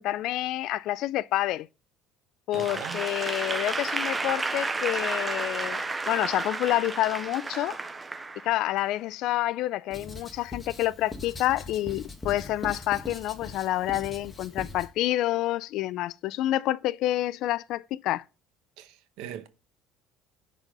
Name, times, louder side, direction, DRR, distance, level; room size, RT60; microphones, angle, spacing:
voice 1, 0.0-1.7 2.5-7.8 8.4-18.2, left 15 dB, 65° left, 0.4 m, -28 dB
Applause / Crowd, 2.5-8.8, right 3 dB, 15° right, 0.6 m, -32 dB
voice 2, 2.5-3.0 18.8-19.5, right 10 dB, 75° right, 1.0 m, -40 dB
Writing, 9.9-14.9, left 3 dB, 20° left, 1.2 m, -41 dB
10.5 x 4.1 x 5.3 m
cardioid pair, 130°, 0 cm